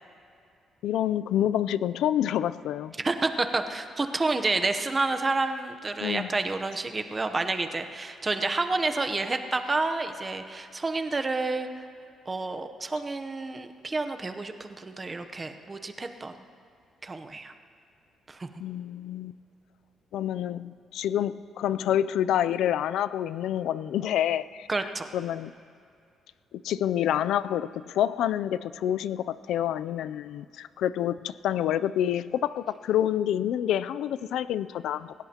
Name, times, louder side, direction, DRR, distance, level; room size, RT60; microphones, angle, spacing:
voice 1, 0.8-2.9 6.0-6.3 18.6-19.4 20.1-24.7 25.1-25.5 26.6-35.1, left 11 dB, 80° left, 15 dB, 0.3 m, -27 dB
voice 2, 3.0-11.8 12.3-16.4 17.0-17.5 18.3-18.5 24.7-25.1, right 3 dB, 20° right, 7 dB, 0.7 m, -29 dB
27.5 x 16.5 x 2.9 m, 2.4 s
cardioid pair, 160°, 0 cm